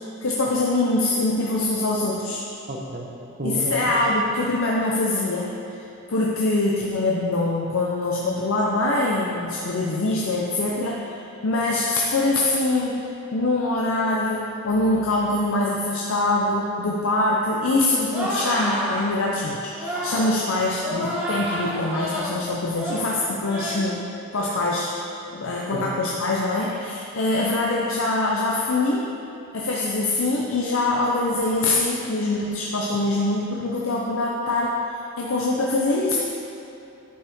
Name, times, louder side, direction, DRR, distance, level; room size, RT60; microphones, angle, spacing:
voice 1, 0.2-2.4 3.4-5.5 6.1-11.2 11.4-13.0 13.3-24.0 24.3-24.9 25.3-29.1 29.5-34.7 35.2-36.2, left 2 dB, 70° left, -3 dB, 0.7 m, -23 dB
voice 2, 2.7-3.1 3.4-4.0 25.7-25.8, equal, 45° right, 0 dB, 0.9 m, -31 dB
sound 1, 18.1-19.0 19.8-20.3 20.8-22.3 22.7-23.1 23.4-23.9 24.3-24.6, equal, 10° right, 1.5 m, -29 dB
10.0 x 5.4 x 3.6 m, 2.8 s
head